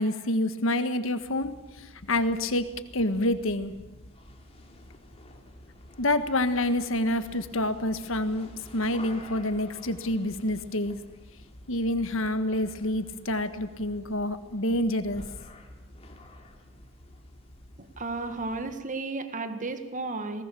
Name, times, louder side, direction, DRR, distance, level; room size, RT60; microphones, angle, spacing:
voice 1, 0.0-2.7 2.9-3.7 6.0-11.0 11.7-15.2, left 1 dB, 65° left, 10 dB, 1.6 m, -27 dB
sound 1, 1.2-18.9, left 1 dB, 30° left, 2.9 m, -50 dB
voice 2, 17.8-20.4, right 3 dB, 40° right, 8 dB, 1.6 m, -33 dB
27.0 x 19.0 x 6.9 m, 1.1 s
head